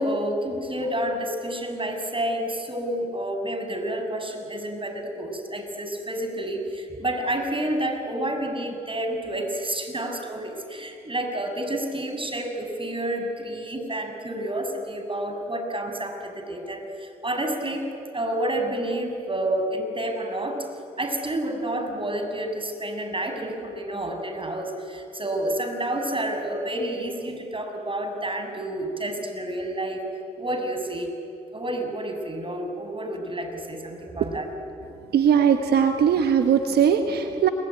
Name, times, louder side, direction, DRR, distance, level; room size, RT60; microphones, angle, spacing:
voice 1, 0.0-17.9 18.1-20.7 21.0-31.1 31.5-34.5, right 1 dB, 30° right, 5 dB, 6.6 m, -29 dB
voice 2, 35.1-37.5, right 8 dB, 85° right, 6 dB, 1.3 m, -20 dB
29.0 x 20.5 x 9.5 m, 2.7 s
supercardioid pair, 40°, 16 cm